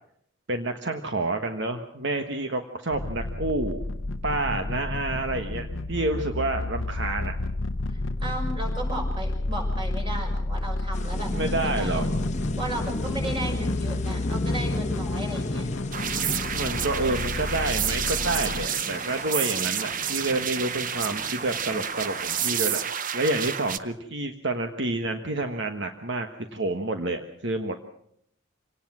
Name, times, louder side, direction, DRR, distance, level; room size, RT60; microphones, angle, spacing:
voice 1, 0.5-3.8 4.2-7.3 11.3-12.2 16.5-22.8 23.1-27.8, right 2 dB, 60° right, 6 dB, 1.4 m, -29 dB
sound 1, 2.9-18.7, left 2 dB, 80° left, 0.9 m, -31 dB
voice 2, 7.9-12.0 12.6-15.7, right 1 dB, 25° right, 2 dB, 5.8 m, -35 dB
sound 2, 10.9-22.9, left 2 dB, 35° left, 1.0 m, -34 dB
sound 3, 15.9-23.8, right 9 dB, 45° right, 0.8 m, -30 dB
26.0 x 18.5 x 6.2 m, 0.70 s
head